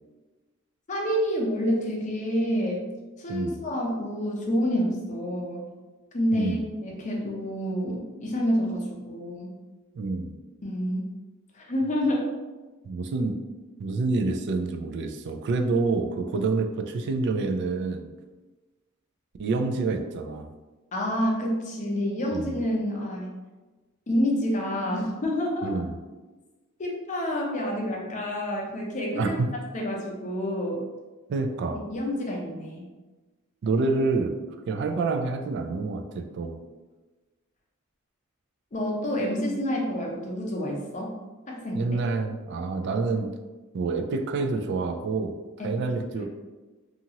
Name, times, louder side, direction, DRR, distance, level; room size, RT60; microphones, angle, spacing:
voice 1, 0.9-2.8 3.2-5.6 6.1-9.5 10.6-11.1 11.5-12.3 20.9-23.3 24.1-25.8 26.8-29.4 29.7-30.8 31.9-32.9 38.7-41.2 41.5-41.9 45.6-46.2, equal, 35° left, -1 dB, 0.6 m, -28 dB
voice 2, 3.3-3.6 6.3-6.6 9.9-10.3 12.8-13.3 13.8-18.1 19.4-20.5 22.3-22.6 25.6-26.0 29.1-29.5 31.3-31.8 33.6-36.6 41.7-43.3 43.7-46.2, right 3 dB, 55° right, 5 dB, 0.3 m, -27 dB
2.8 x 2.4 x 2.8 m, 1.2 s
head